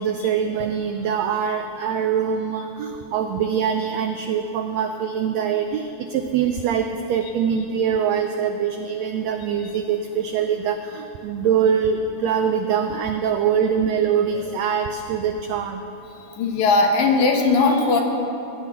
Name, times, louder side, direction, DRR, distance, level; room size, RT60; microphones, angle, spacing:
voice 1, 0.0-15.8, right 7 dB, 90° right, 6 dB, 1.5 m, -23 dB
voice 2, 16.2-18.0, left 3 dB, 70° left, 2 dB, 2.4 m, -19 dB
19.0 x 9.9 x 3.5 m, 2.7 s
omnidirectional pair, 3.6 m